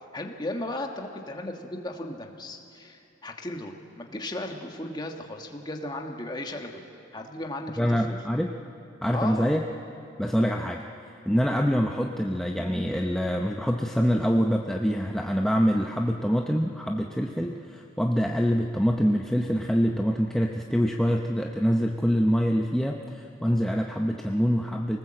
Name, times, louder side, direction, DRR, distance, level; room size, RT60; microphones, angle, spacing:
voice 1, 0.1-6.8 7.1-8.2 9.1-9.5, left 1 dB, 20° left, 2 dB, 1.5 m, -35 dB
voice 2, 7.8-8.5 9.0-9.6 10.2-10.8 11.3-25.0, equal, ahead, 1 dB, 0.7 m, -25 dB
25.5 x 19.0 x 7.7 m, 2.6 s
head